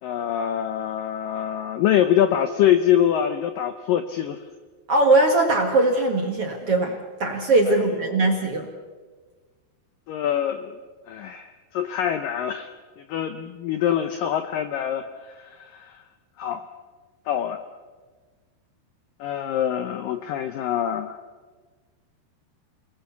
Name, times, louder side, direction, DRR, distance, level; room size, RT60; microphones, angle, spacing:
voice 1, 0.0-4.4 7.7-8.3 10.1-10.8 11.1-12.7 13.0-16.0 16.4-16.7 17.3-17.6 19.2-21.2, left 10 dB, 80° left, 9 dB, 2.0 m, -25 dB
voice 2, 4.9-8.7, right 2 dB, 50° right, 2 dB, 1.9 m, -20 dB
28.5 x 19.5 x 7.1 m, 1.4 s
omnidirectional pair, 5.0 m